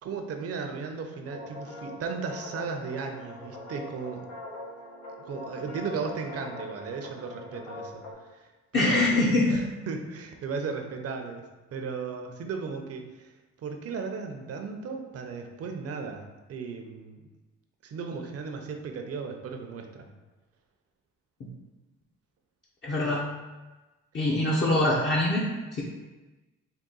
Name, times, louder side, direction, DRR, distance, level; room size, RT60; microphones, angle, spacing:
voice 1, 0.0-4.3 5.2-13.3 13.6-17.2 17.8-20.1 23.0-23.2, right 5 dB, 55° right, 4 dB, 0.6 m, -36 dB
sound 1, 1.2-8.1, left 2 dB, 90° left, 1.3 m, -42 dB
voice 2, 8.7-9.6 21.4-21.5 22.8-23.2 24.1-25.8, left 1 dB, 35° left, -5 dB, 0.7 m, -24 dB
3.8 x 2.3 x 3.7 m, 1.2 s
cardioid pair, 90°, 30 cm